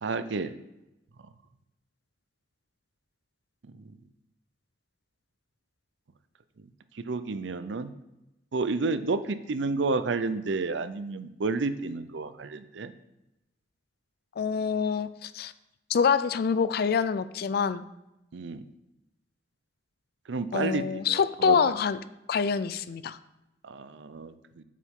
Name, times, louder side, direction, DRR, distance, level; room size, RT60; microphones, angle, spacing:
voice 1, 0.0-0.5 3.7-3.8 6.9-7.9 8.5-12.9 18.3-18.6 20.3-21.7 23.6-24.6, right 3 dB, 75° right, 12 dB, 0.6 m, -31 dB
voice 2, 14.4-15.5 15.9-17.8 20.5-22.0 22.3-23.2, left 6 dB, 55° left, 15 dB, 0.4 m, -26 dB
8.3 x 7.5 x 3.7 m, 0.93 s
head